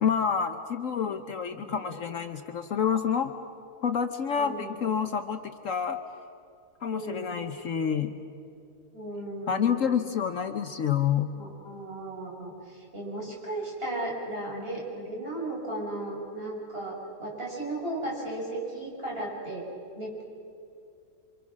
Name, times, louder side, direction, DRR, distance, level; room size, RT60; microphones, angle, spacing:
voice 1, 0.0-3.3 3.8-6.0 6.8-8.1 9.5-11.3, left 7 dB, 60° left, 8 dB, 1.1 m, -28 dB
voice 2, 1.0-2.0 4.3-4.7 6.9-7.3 8.9-9.9 11.3-19.6 20.0-20.2, right 1 dB, 35° right, -4 dB, 6.4 m, -36 dB
28.0 x 25.5 x 6.2 m, 2.6 s
omnidirectional pair, 1.7 m